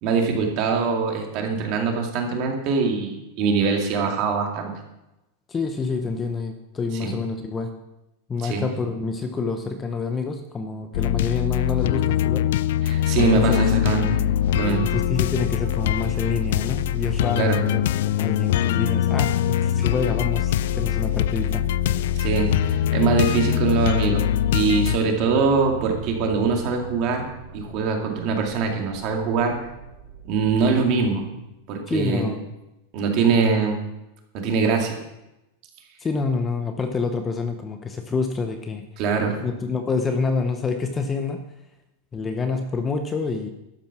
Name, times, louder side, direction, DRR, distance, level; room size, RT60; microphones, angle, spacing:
voice 1, 0.0-4.7 7.0-7.1 8.4-8.6 12.8-14.2 14.5-14.9 17.4-17.6 22.2-24.2 24.5-27.3 27.5-29.5 30.3-31.2 31.7-32.3 32.9-33.8 34.3-35.0 39.0-39.4, right 5 dB, 40° right, 2 dB, 2.3 m, -23 dB
voice 2, 5.5-7.7 8.3-12.5 13.2-13.6 14.9-21.7 31.8-32.5 36.0-38.9 39.4-41.6 42.1-43.5, left 4 dB, 15° left, 6 dB, 0.7 m, -27 dB
sound 1, 10.9-25.0, left 12 dB, 65° left, 0.3 m, -23 dB
sound 2, 14.1-31.8, right 5 dB, 75° right, 2.4 m, -38 dB
12.0 x 8.7 x 6.0 m, 0.93 s
supercardioid pair, 165°, 0 cm